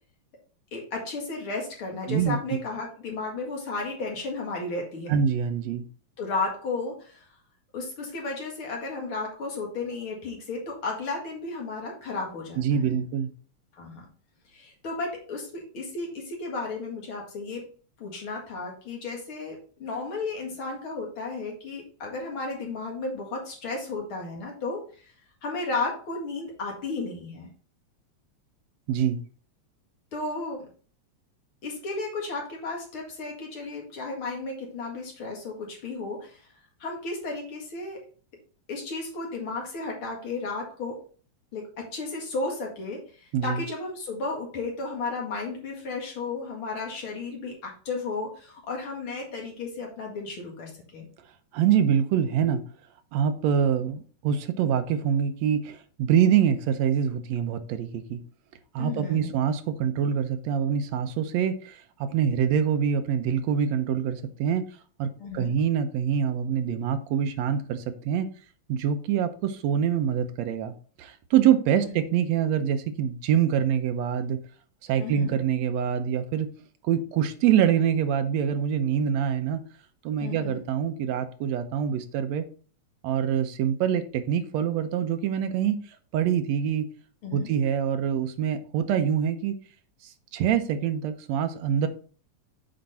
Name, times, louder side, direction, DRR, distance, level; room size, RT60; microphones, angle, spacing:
voice 1, 0.7-5.2 6.2-7.2 7.7-13.0 13.8-14.1 14.5-17.7 18.0-25.1 25.4-27.5 30.1-30.7 31.6-36.4 36.8-38.0 38.7-41.0 41.5-51.1 58.8-59.3 65.2-65.5 71.7-71.9 75.0-75.4 80.2-80.6 87.2-87.5, left 3 dB, 50° left, 0 dB, 2.5 m, -34 dB
voice 2, 2.1-2.6 5.1-5.9 12.6-13.3 28.9-29.2 43.3-43.6 51.5-52.6 53.1-58.2 58.7-64.6 65.0-68.3 68.7-70.7 71.0-74.4 74.8-76.5 76.8-79.6 80.0-82.4 83.0-85.8 86.1-86.9 87.3-89.5 90.3-91.9, right 8 dB, 75° right, 8 dB, 1.9 m, -25 dB
7.8 x 4.5 x 4.2 m, 0.41 s
omnidirectional pair, 3.3 m